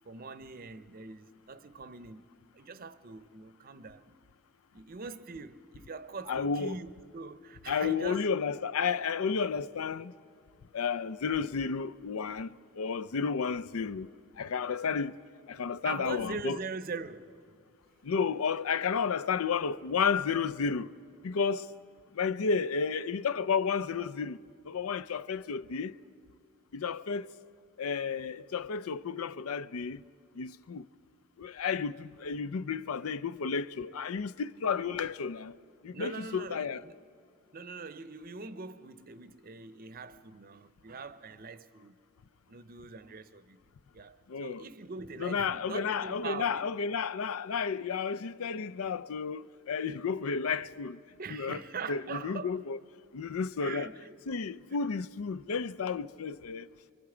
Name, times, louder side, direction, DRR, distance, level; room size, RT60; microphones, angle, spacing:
voice 1, 0.0-2.3 2.5-4.1 4.7-8.3 15.8-17.6 19.8-19.9 35.9-36.9 37.5-42.0 42.5-43.6 43.9-46.7 51.2-52.6 53.6-54.2, right 4 dB, 45° right, 0.6 m, -42 dB
voice 2, 6.3-6.8 7.7-10.1 10.7-14.1 14.4-15.1 15.5-16.6 18.0-20.9 21.2-21.7 22.2-24.4 24.7-25.9 26.7-27.3 27.8-30.0 30.4-30.9 31.4-35.6 35.8-36.8 44.3-44.6 45.2-51.0 51.3-51.6 51.9-52.8 53.1-53.9 54.3-56.7, left 5 dB, 85° left, 0.5 m, -32 dB
25.5 x 24.0 x 4.9 m
head